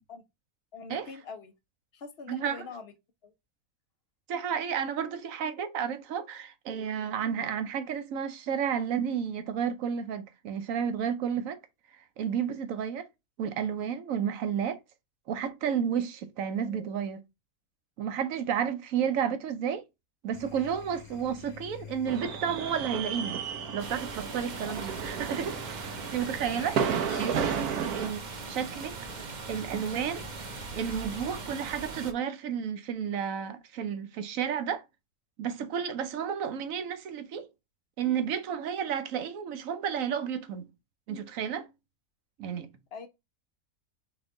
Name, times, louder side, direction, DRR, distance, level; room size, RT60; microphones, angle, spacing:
voice 1, 0.7-1.5 1.9-2.9 3.2-3.3 24.6-25.1 42.9-43.1, left 4 dB, 50° left, 0.9 m, -43 dB
voice 2, 2.3-2.7 4.3-11.6 12.2-13.1 13.4-14.8 15.3-17.2 18.0-19.8 20.2-23.4 23.7-25.6 26.1-29.0 29.5-30.2 30.7-34.8 35.4-37.5 38.0-40.7 41.1-41.7 42.4-42.7, right 8 dB, 65° right, 1.1 m, -32 dB
sound 1, 20.3-31.5, left 7 dB, 75° left, 1.4 m, -48 dB
sound 2, 22.1-28.1, right 7 dB, 85° right, 1.3 m, -33 dB
sound 3, 23.8-32.1, right 5 dB, 45° right, 0.6 m, -40 dB
4.4 x 3.3 x 3.7 m
omnidirectional pair, 1.6 m